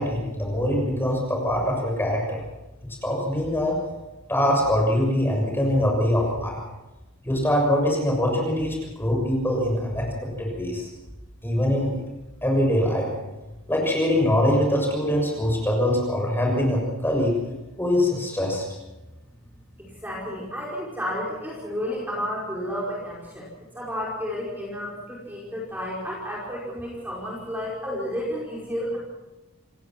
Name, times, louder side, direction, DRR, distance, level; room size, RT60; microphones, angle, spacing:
voice 1, 0.0-2.4 3.0-3.7 4.3-6.6 7.2-10.1 10.4-10.9 11.4-12.0 12.4-13.1 13.7-17.3 17.8-18.6, left 1 dB, 10° left, -1 dB, 6.6 m, -23 dB
voice 2, 19.8-23.5 23.7-29.0, equal, 10° right, -5 dB, 5.2 m, -31 dB
28.0 x 18.0 x 6.1 m, 1.1 s
head